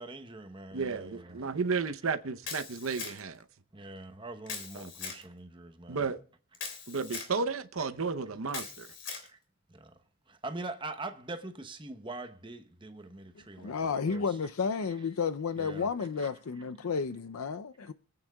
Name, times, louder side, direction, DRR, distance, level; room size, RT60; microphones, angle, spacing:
voice 1, 0.0-1.4 3.7-6.0 9.3-9.4 9.7-9.9 10.3-14.4 15.6-15.9 16.2-16.3, right 2 dB, 20° right, 0.9 m, -43 dB
voice 2, 0.7-3.4 4.7-4.9 5.9-6.2 6.9-8.9, right 4 dB, 80° right, 0.8 m, -33 dB
Camera, 2.4-3.4 4.5-5.2 6.5-7.3 8.5-9.3, left 5 dB, 55° left, 3.2 m, -40 dB
voice 3, 13.6-17.9, left 5 dB, 90° left, 0.5 m, -32 dB
26.0 x 8.8 x 2.3 m
head